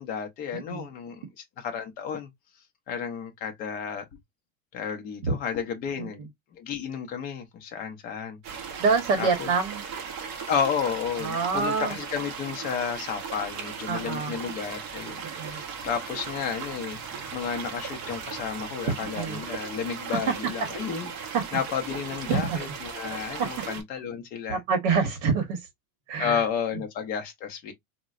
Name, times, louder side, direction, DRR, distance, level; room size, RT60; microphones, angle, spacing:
voice 1, 0.0-2.3 2.9-4.1 4.7-8.4 9.2-9.5 10.5-17.0 17.3-21.1 21.5-24.6 26.2-27.7, left 7 dB, 20° left, 0.4 m, -32 dB
voice 2, 0.5-0.9 5.2-5.3 6.0-6.1 8.8-9.8 11.2-11.9 13.9-14.3 15.2-15.6 19.1-19.4 21.3-21.4 22.3-22.4 24.5-25.6 26.1-26.4, right 5 dB, 50° right, 0.9 m, -26 dB
sound 1, 8.4-23.8, right 6 dB, 25° right, 0.5 m, -37 dB
3.7 x 2.1 x 2.3 m
supercardioid pair, 160°, 42 cm